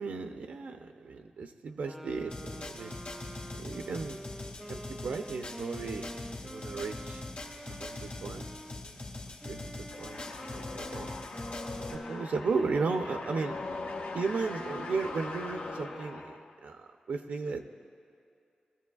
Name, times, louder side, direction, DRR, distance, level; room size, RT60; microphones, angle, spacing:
voice 1, 0.0-3.0 3.6-4.2 4.7-7.2 7.7-8.5 8.8-9.0 9.4-11.1 11.7-13.6 14.1-17.7, right 4 dB, 90° right, 5 dB, 0.6 m, -35 dB
sound 1, 1.8-8.8 9.4-16.6, equal, 5° right, 0.3 m, -46 dB
sound 2, 2.3-11.9, left 2 dB, 60° left, 1.9 m, -42 dB
sound 3, 9.9-16.7, left 3 dB, 85° left, 0.8 m, -41 dB
21.0 x 14.0 x 2.4 m, 2.5 s
wide cardioid pair, 140°, 3 cm